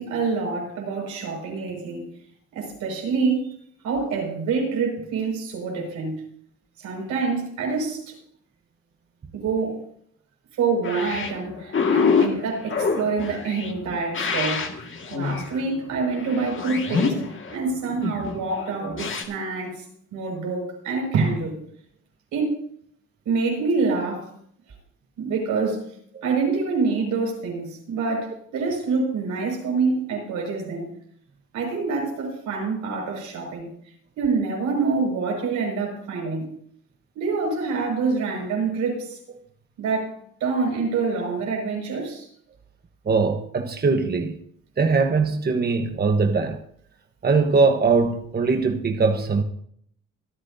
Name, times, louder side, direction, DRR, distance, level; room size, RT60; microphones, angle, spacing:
voice 1, 0.0-2.1 2.5-3.5 3.8-6.2 6.8-8.1 9.3-9.8 10.6-14.7 15.1-19.8 20.1-21.6 22.3-22.6 23.3-24.3 25.2-25.8 26.2-30.9 31.5-33.7 34.2-36.5 37.1-39.2 39.8-40.1 40.4-42.3, right 4 dB, 90° right, 5.9 m, -26 dB
sound 1, 10.8-19.2, left 5 dB, 40° left, 2.0 m, -26 dB
voice 2, 43.1-44.4 44.8-46.6 47.2-49.4, right 4 dB, 30° right, 1.2 m, -21 dB
25.5 x 9.7 x 2.7 m
cardioid pair, 90°, 30 cm